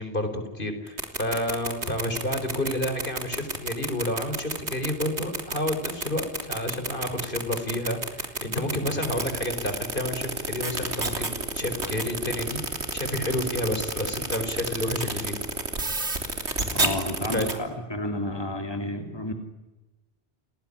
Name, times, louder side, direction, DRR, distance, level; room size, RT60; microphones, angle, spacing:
voice 1, 0.0-12.6 12.9-15.4 17.3-17.5, left 1 dB, 50° left, 8 dB, 4.5 m, -30 dB
sound 1, 0.9-17.5, right 2 dB, 85° right, 3.7 m, -29 dB
voice 2, 16.7-19.3, left 1 dB, 20° left, 5 dB, 2.9 m, -31 dB
29.5 x 20.0 x 9.9 m, 1.1 s
omnidirectional pair, 1.1 m